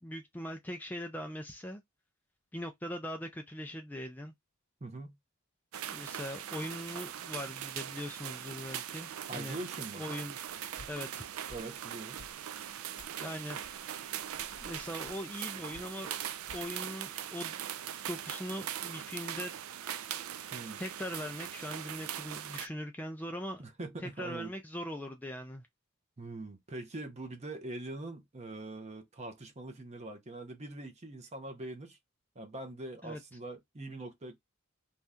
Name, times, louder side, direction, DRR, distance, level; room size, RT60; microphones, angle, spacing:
voice 1, 0.0-1.8 2.5-4.3 5.9-9.6 9.9-10.4 10.9-11.2 13.2-13.6 14.6-16.2 16.5-17.6 18.1-19.5 20.8-23.6 24.0-25.6 33.0-33.2, equal, 10° left, 0.3 m, -41 dB
voice 2, 4.8-5.1 9.3-10.0 11.5-12.2 20.5-20.8 23.6-24.5 26.2-32.0 32.4-34.4, right 2 dB, 30° right, 0.7 m, -43 dB
sound 1, 5.7-22.7, right 10 dB, 70° right, 0.3 m, -41 dB
sound 2, 10.7-13.3 13.6-15.4 15.7-16.7, left 1 dB, 85° right, 1.5 m, -54 dB
2.7 x 2.3 x 3.4 m
head